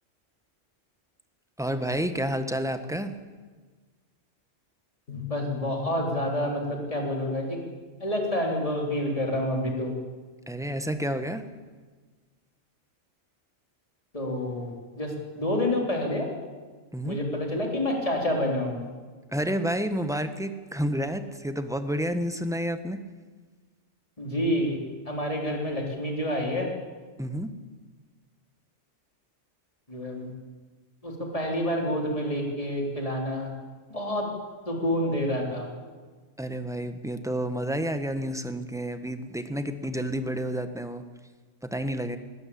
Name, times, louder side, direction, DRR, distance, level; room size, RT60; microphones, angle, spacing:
voice 1, 1.6-3.1 10.5-11.5 16.9-17.2 19.3-23.0 27.2-27.5 36.4-41.0 41.6-42.2, equal, 5° right, 9 dB, 1.3 m, -30 dB
sound 1, 5.1-8.8, left 7 dB, 65° left, 3.3 m, -42 dB
voice 2, 5.3-7.6 8.0-9.9 14.1-16.3 17.0-18.9 24.2-24.8 25.0-26.7 29.9-30.3 31.0-33.5 33.9-34.3 34.7-35.7, left 1 dB, 30° left, 0 dB, 4.1 m, -28 dB
20.5 x 19.0 x 8.7 m, 1.4 s
omnidirectional pair, 1.3 m